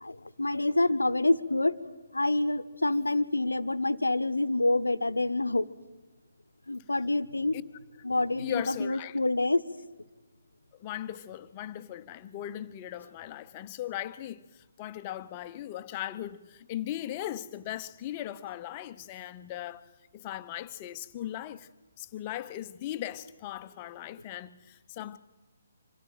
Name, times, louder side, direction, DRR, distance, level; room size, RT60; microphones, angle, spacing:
voice 1, 0.0-1.8 2.1-5.7 6.7-7.6 8.0-9.6, left 2 dB, 75° left, 0.9 m, -27 dB
voice 2, 8.4-9.2 10.8-21.7 22.0-25.2, left 12 dB, 25° left, 0.9 m, -38 dB
25.5 x 14.5 x 9.0 m
figure-of-eight pair, 135°, 0 cm